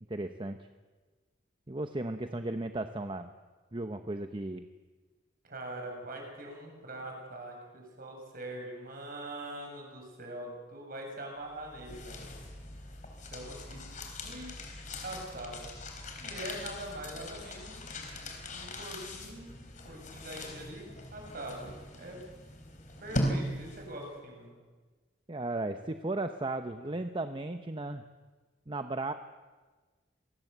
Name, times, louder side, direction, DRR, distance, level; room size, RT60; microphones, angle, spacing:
voice 1, 0.1-0.7 1.7-3.3 3.7-4.7 25.3-28.0 28.7-29.1, right 2 dB, 25° right, 8 dB, 0.9 m, -35 dB
voice 2, 5.4-12.3 13.2-13.8 14.2-14.5 15.0-15.7 16.2-17.9 18.5-19.6 19.9-21.7 22.0-22.2 23.0-24.5, right 1 dB, 50° right, 1 dB, 7.0 m, -43 dB
sound 1, 11.5-24.1, left 1 dB, 40° left, 3.9 m, -40 dB
27.0 x 18.5 x 8.1 m, 1.3 s
head